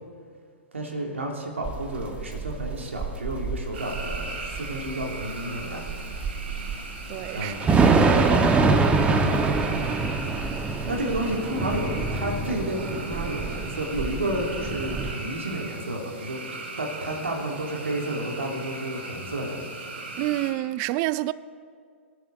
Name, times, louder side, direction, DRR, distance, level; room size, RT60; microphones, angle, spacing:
voice 1, 0.7-5.8 7.3-7.7 9.5-10.0 10.9-16.4 16.8-19.6, right 1 dB, 85° right, 2.9 m, -31 dB
Thunder / Rain, 1.6-15.1, right 4 dB, 15° right, 1.3 m, -25 dB
sound 1, 3.7-20.5, right 2 dB, 60° right, 3.3 m, -38 dB
voice 2, 7.1-7.8 20.2-21.3, right 17 dB, 40° right, 0.5 m, -28 dB
sound 2, 8.6-12.7, left 5 dB, 55° left, 1.7 m, -41 dB
24.5 x 11.0 x 4.0 m
hypercardioid pair, 110°, 7 cm